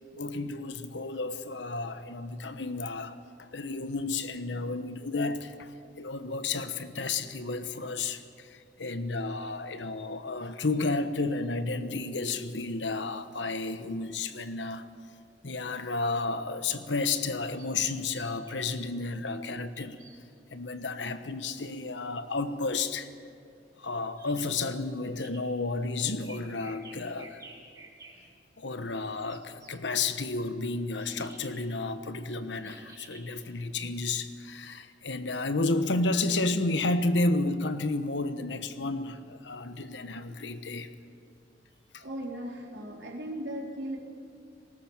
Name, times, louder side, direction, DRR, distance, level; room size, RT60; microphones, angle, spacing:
voice 1, 0.1-14.8 15.4-20.0 20.5-23.1 23.8-27.4 28.6-40.9 41.9-42.0, left 3 dB, 85° left, 1.2 m, -32 dB
sound 1, 17.6-18.6 19.7-20.2 20.8-21.0 24.2-24.5 25.0-25.4 26.1-28.2 28.9-29.9 31.0-31.6 32.6-33.6, right 3 dB, 20° right, 4.3 m, -51 dB
voice 2, 42.0-44.0, right 1 dB, 80° right, 3.6 m, -37 dB
20.0 x 18.5 x 7.3 m
head